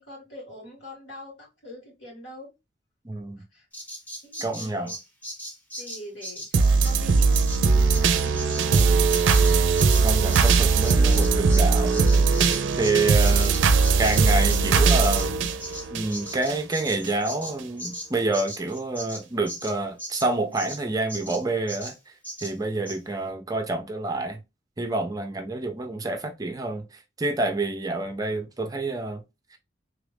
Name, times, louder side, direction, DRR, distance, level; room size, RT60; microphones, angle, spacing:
voice 1, 0.0-2.5 3.4-3.7 4.2-4.9 5.8-7.5 7.8-8.7, left 1 dB, 70° left, 2.2 m, -43 dB
voice 2, 3.0-3.4 4.4-4.9 10.0-12.4 12.8-13.5 14.0-15.5 15.9-21.9 22.4-24.4 24.8-29.2 29.5-29.6, right 2 dB, 20° right, 0.5 m, -28 dB
Bird vocalization bird call bird song, 3.7-11.7 11.9-20.8 21.1-21.4 21.7-22.0 22.2-22.5 22.9-23.0, equal, 10° left, 0.9 m, -38 dB
sound 1, 6.5-16.6 17.0-17.1, right 4 dB, 80° right, 0.4 m, -20 dB
3.4 x 2.4 x 3.3 m
head